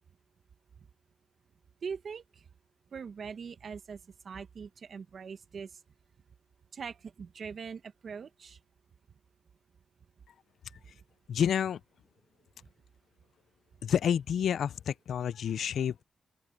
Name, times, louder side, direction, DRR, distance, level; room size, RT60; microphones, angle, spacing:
voice 1, 1.8-2.2 2.9-4.0 4.2-5.7 6.7-8.6, right 6 dB, 60° right, 1.8 m, -41 dB
voice 2, 11.3-11.8 13.8-16.0, left 8 dB, 80° left, 0.6 m, -29 dB
open air
cardioid pair, 85°, 0 cm